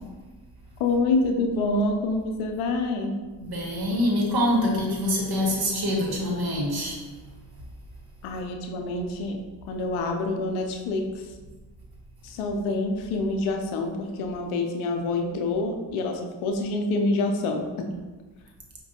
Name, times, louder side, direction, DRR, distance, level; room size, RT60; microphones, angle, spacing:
voice 1, 0.8-3.1 8.2-9.4 9.7-11.2 12.2-17.9, left 2 dB, 85° left, 3 dB, 0.6 m, -27 dB
voice 2, 3.4-7.0, left 1 dB, 50° right, -2 dB, 1.2 m, -25 dB
4.9 x 2.2 x 2.7 m, 1.3 s
supercardioid pair, 55°, 48 cm